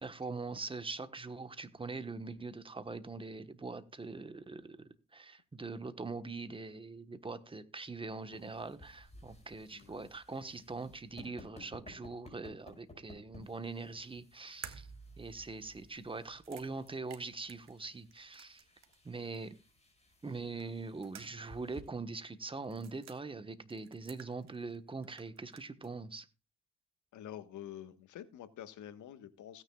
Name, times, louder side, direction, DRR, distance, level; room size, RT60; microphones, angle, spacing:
voice 1, 0.0-14.9 15.2-18.6 19.0-19.5 20.2-26.3, right 3 dB, 15° right, 1.2 m, -43 dB
sound 1, 7.9-21.8, left 2 dB, 20° left, 5.4 m, -58 dB
voice 2, 9.7-10.1 27.1-29.6, left 10 dB, 75° left, 1.4 m, -48 dB
sound 2, 14.6-19.1 19.3-19.4 20.6-21.6 21.8-21.9 22.6-23.2 23.7-24.8 25.0-25.9, right 7 dB, 60° right, 1.7 m, -53 dB
17.0 x 9.5 x 2.3 m
cardioid pair, 90°, 30 cm